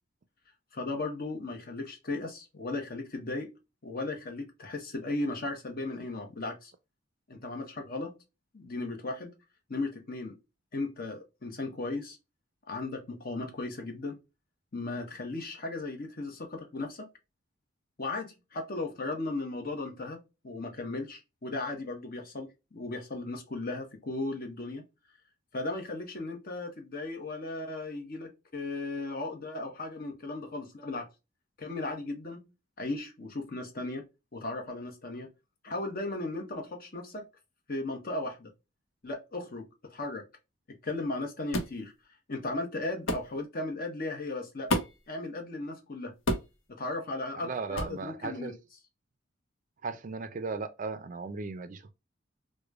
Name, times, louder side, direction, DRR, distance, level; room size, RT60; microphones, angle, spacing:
voice 1, 0.7-3.5 3.8-6.7 7.3-8.1 8.5-9.3 9.7-10.3 10.7-12.2 12.7-14.2 14.7-17.1 18.0-20.2 20.4-24.8 25.5-31.1 31.6-32.4 32.8-35.3 35.6-37.2 37.7-38.5 39.0-40.2 40.7-41.9 42.3-44.7 45.1-46.1 46.7-48.6, left 2 dB, 50° left, 0.9 m, -36 dB
sound 1, 41.5-41.8 43.1-43.3 44.7-45.1 46.3-46.6 47.7-48.0, left 1 dB, 85° left, 0.9 m, -30 dB
voice 2, 47.4-48.5 49.8-51.9, right 4 dB, 40° right, 0.4 m, -36 dB
4.9 x 2.2 x 2.4 m
head